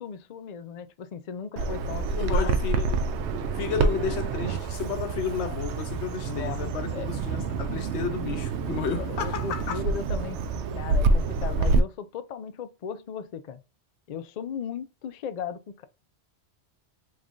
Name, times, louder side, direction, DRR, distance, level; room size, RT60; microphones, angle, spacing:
voice 1, 0.0-2.6 6.3-6.6 6.9-7.1 8.9-10.5 10.7-13.6 14.1-15.8, left 7 dB, 60° left, 0.4 m, -36 dB
Bird vocalization bird call bird song, 1.6-11.8, right 4 dB, 85° right, 0.9 m, -27 dB
voice 2, 2.1-3.2 3.5-9.8, left 7 dB, 80° left, 0.9 m, -32 dB
3.6 x 3.2 x 2.5 m
omnidirectional pair, 1.1 m